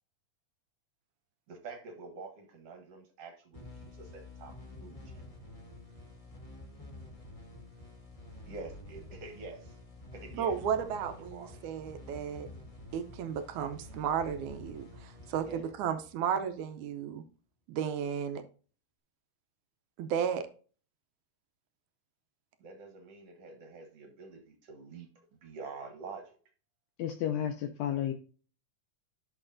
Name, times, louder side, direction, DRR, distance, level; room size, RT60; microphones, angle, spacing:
voice 1, 1.5-4.5 4.8-5.2 8.5-9.8 10.1-11.6 15.4-15.6 22.6-25.1 25.4-26.3, right 4 dB, 55° right, 4 dB, 2.1 m, -47 dB
sound 1, 3.5-16.8, left 2 dB, 25° left, 0.8 m, -49 dB
voice 2, 10.3-12.5 12.9-17.2 17.7-18.4 20.0-20.5, right 8 dB, 75° right, 8 dB, 2.1 m, -34 dB
voice 3, 27.0-28.1, left 10 dB, 80° left, 7 dB, 1.6 m, -32 dB
11.0 x 6.4 x 2.6 m, 0.39 s
omnidirectional pair, 3.7 m